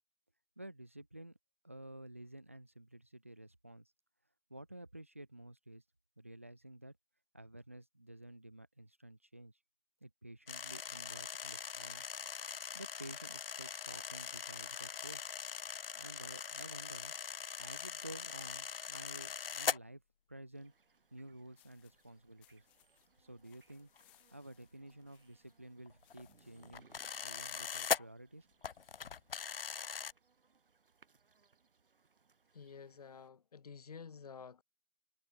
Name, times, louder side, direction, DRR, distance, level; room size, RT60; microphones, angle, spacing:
voice 1, 0.6-1.4 1.6-3.9 4.5-5.8 6.2-7.0 7.3-9.5 10.0-12.0 12.7-15.2 16.0-17.1 17.6-20.0 20.3-20.7 21.1-22.7 23.2-23.9 24.3-26.9 27.2-28.5, right 1 dB, 15° right, 0.6 m, -52 dB
sound 1, 10.5-19.8 23.5-23.6 24.0-24.2 25.9-28.0 28.6-30.1, left 7 dB, 65° left, 0.8 m, -41 dB
sound 2, 20.5-33.3, right 5 dB, 60° right, 6.1 m, -71 dB
sound 3, 21.6-26.7, left 19 dB, 5° left, 1.0 m, -72 dB
voice 2, 32.5-34.6, left 6 dB, 40° left, 1.2 m, -51 dB
hypercardioid pair, 175°, 31 cm